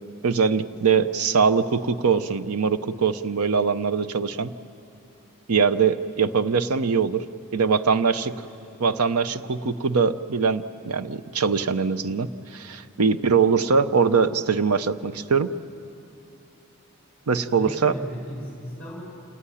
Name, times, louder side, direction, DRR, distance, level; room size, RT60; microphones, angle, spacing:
voice 1, 0.2-4.5 5.5-7.2 7.5-8.3 8.8-15.5 17.3-17.9, right 5 dB, 85° right, 12 dB, 0.7 m, -22 dB
voice 2, 8.1-8.7 9.3-9.6 13.1-13.4 17.5-19.0, equal, 5° left, -3 dB, 4.2 m, -38 dB
27.5 x 15.5 x 10.0 m, 2.7 s
head